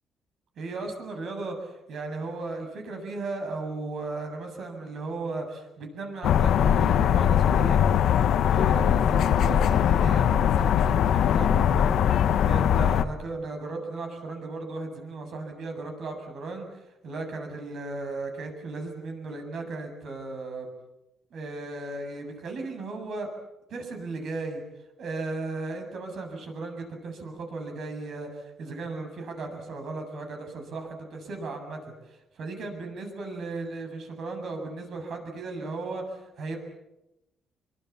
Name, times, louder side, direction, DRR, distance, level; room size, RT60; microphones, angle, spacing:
voice 1, 0.6-7.8 8.4-20.7 21.3-23.3 23.7-24.6 25.0-36.6, right 3 dB, 55° right, 5 dB, 7.6 m, -36 dB
sound 1, 6.2-13.0, left 9 dB, 65° left, 1.3 m, -21 dB
27.5 x 24.0 x 7.3 m, 0.92 s
cardioid pair, 145°, 0 cm